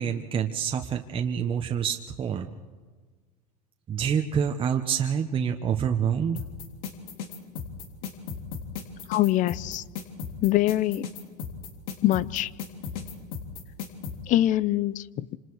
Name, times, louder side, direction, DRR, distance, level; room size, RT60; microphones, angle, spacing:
voice 1, 0.0-2.5 3.9-6.4, right 7 dB, 25° right, 3 dB, 1.2 m, -27 dB
sound 1, 6.4-14.2, left 6 dB, 70° left, 3.7 m, -35 dB
voice 2, 9.1-9.8 10.4-11.1 12.0-12.5 14.3-15.4, left 14 dB, 45° left, 20 dB, 0.7 m, -24 dB
27.5 x 26.5 x 4.9 m, 1.4 s
supercardioid pair, 115°, 19 cm